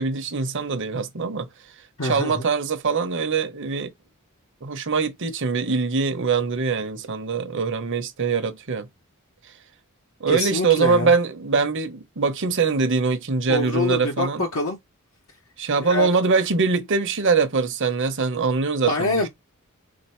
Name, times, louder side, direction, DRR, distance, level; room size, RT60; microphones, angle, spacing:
voice 1, 0.0-1.5 2.0-3.9 4.6-8.9 10.2-14.4 15.6-19.3, right 4 dB, 60° right, 0.8 m, -23 dB
voice 2, 2.0-2.4 10.3-11.1 13.5-14.8 15.8-16.1 18.8-19.3, left 2 dB, 70° left, 0.9 m, -25 dB
3.8 x 2.7 x 4.3 m
head